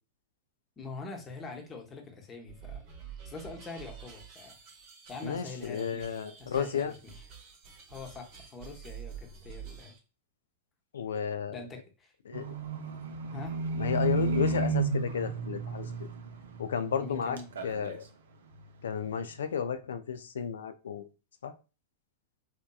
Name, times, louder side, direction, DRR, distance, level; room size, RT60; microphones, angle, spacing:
voice 1, 0.8-2.8 3.2-4.6 5.1-7.2 7.9-9.9 11.5-12.1 13.3-13.6 17.0-17.5, left 3 dB, 25° left, 3 dB, 0.8 m, -44 dB
sound 1, 2.5-10.0, right 8 dB, 50° right, 0.9 m, -48 dB
voice 2, 5.2-6.9 10.9-11.6 12.3-12.6 13.8-16.1 16.6-17.4 17.6-18.0 18.8-21.1 21.4-21.5, left 7 dB, 80° left, 11 dB, 0.3 m, -33 dB
Livestock farm animals working animals, 12.3-17.1 17.4-18.1 18.5-18.6, right 3 dB, 80° right, 0.5 m, -32 dB
2.8 x 2.2 x 2.2 m, 0.32 s
hypercardioid pair, 105°, 0 cm